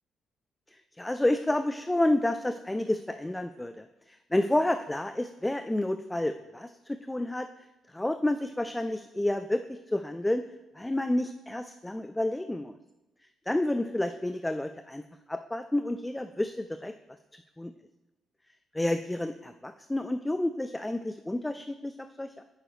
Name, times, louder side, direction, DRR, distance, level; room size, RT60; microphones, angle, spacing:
voice 1, 1.0-7.5 7.9-10.4 10.8-12.7 13.5-15.0 15.3-16.9 17.6-17.7 18.7-22.4, left 1 dB, 10° left, 8 dB, 0.3 m, -30 dB
9.1 x 6.3 x 3.2 m, 1.0 s
cardioid pair, 90°, 0 cm